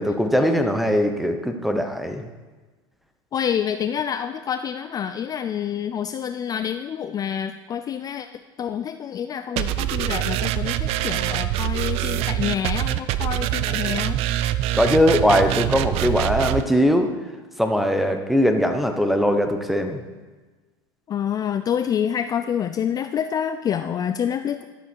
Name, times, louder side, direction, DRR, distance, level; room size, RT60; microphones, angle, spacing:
voice 1, 0.0-2.2 14.7-17.1 17.6-20.0, equal, ahead, 6 dB, 1.0 m, -20 dB
voice 2, 3.3-8.3 8.6-14.2 21.1-24.6, left 8 dB, 30° left, 9 dB, 0.4 m, -27 dB
sound 1, 9.6-16.6, right 13 dB, 55° right, 0.5 m, -24 dB
11.5 x 6.9 x 4.6 m, 1.3 s
hypercardioid pair, 90°, 12 cm